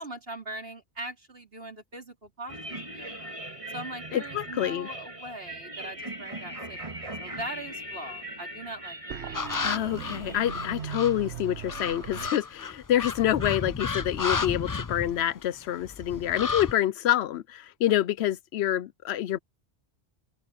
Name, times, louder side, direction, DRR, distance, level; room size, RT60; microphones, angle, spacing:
voice 1, 0.0-3.3 3.7-9.2, right 1 dB, 65° right, 4.9 m, -41 dB
sound 1, 2.5-11.9, right 1 dB, 30° right, 2.1 m, -40 dB
voice 2, 4.1-4.9 9.6-19.4, left 12 dB, 80° left, 0.8 m, -27 dB
sound 2, 9.1-12.3, right 8 dB, 85° right, 1.2 m, -39 dB
sound 3, 9.3-11.2 11.7-15.5 15.8-16.7, left 4 dB, 35° left, 0.3 m, -32 dB
open air
omnidirectional pair, 1.1 m